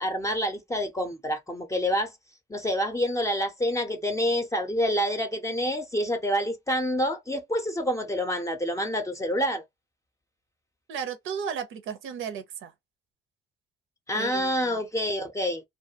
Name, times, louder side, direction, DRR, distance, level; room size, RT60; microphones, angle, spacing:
voice 1, 0.0-2.1 2.5-9.6 14.1-15.6, equal, 15° left, 0.5 m, -27 dB
voice 2, 10.9-12.7 14.1-14.8, right 7 dB, 85° right, 0.6 m, -35 dB
2.3 x 2.2 x 2.7 m
cardioid pair, 90°, 20 cm